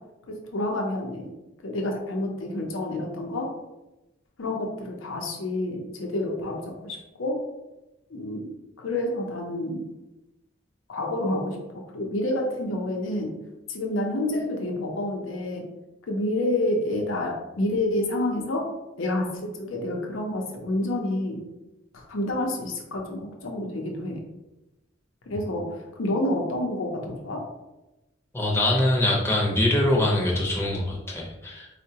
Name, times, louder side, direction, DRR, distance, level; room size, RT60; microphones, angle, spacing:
voice 1, 0.3-1.3 1.6-3.5 4.4-7.4 8.1-8.5 8.8-9.8 10.9-11.6 11.9-13.3 13.7-15.6 16.1-18.6 19.0-21.4 21.9-24.2 25.3-27.4, left 1 dB, 85° left, 1 dB, 0.6 m, -28 dB
voice 2, 28.3-31.7, left 1 dB, 15° left, -3 dB, 0.6 m, -23 dB
4.4 x 2.1 x 2.8 m, 1.0 s
head